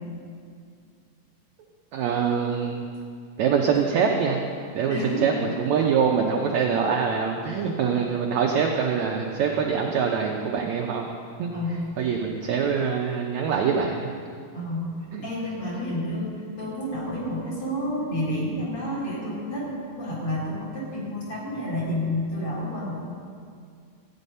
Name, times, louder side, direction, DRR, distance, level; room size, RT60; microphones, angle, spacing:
voice 1, 1.9-2.8 3.4-4.4 4.8-11.5 12.0-14.1 15.1-15.2, right 6 dB, 75° right, 1 dB, 1.7 m, -24 dB
voice 2, 4.9-5.5 11.5-11.8 14.5-14.9 15.2-16.3 16.6-19.7 20.0-22.9, left 1 dB, 40° left, -6 dB, 4.1 m, -29 dB
14.5 x 9.2 x 5.4 m, 2.2 s
omnidirectional pair, 4.0 m